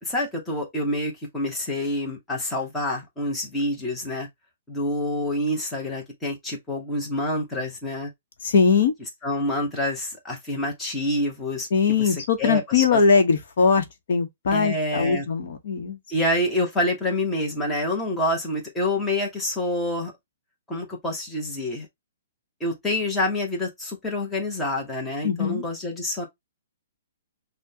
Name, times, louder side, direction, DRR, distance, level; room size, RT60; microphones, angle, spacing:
voice 1, 0.0-4.3 4.7-8.1 9.2-13.0 14.5-15.3 16.1-20.1 20.7-21.9 22.6-26.3, left 1 dB, 5° left, 1.0 m, -27 dB
voice 2, 8.4-8.9 11.7-16.0 25.2-25.6, left 5 dB, 55° left, 1.0 m, -21 dB
6.0 x 2.2 x 2.8 m
hypercardioid pair, 170°, 0 cm